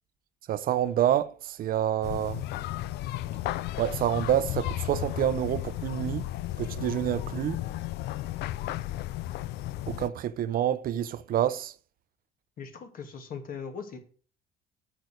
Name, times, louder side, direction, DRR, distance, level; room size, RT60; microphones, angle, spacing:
voice 1, 0.5-2.4 3.8-6.3 6.6-7.6 9.9-11.7, right 11 dB, 60° right, 0.7 m, -27 dB
sound 1, 2.0-10.1, left 15 dB, 80° left, 0.5 m, -34 dB
voice 2, 12.6-14.0, left 6 dB, 55° left, 2.4 m, -39 dB
9.1 x 6.8 x 6.4 m
cardioid pair, 110°, 17 cm